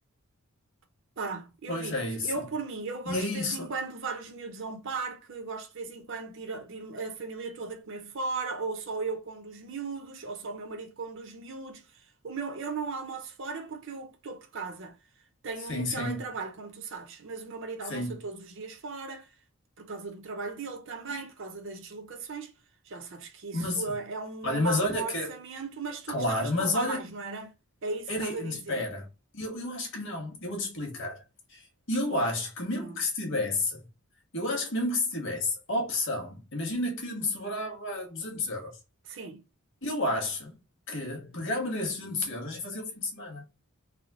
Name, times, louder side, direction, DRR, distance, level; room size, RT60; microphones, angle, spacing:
voice 1, 1.2-11.8 12.2-15.0 15.4-19.3 19.8-22.5 22.9-27.5 27.8-28.8 32.1-32.2 32.7-33.0 39.1-39.4, right 4 dB, 60° right, 0.7 m, -37 dB
voice 2, 1.7-2.4 3.1-3.7 15.7-16.2 17.8-18.2 21.1-21.2 23.5-23.9 24.4-25.3 26.1-27.0 28.1-29.1 29.3-31.2 31.5-33.8 34.3-38.7 39.8-40.6 40.9-43.4, left 2 dB, 60° left, 1.3 m, -31 dB
3.5 x 2.0 x 3.6 m
head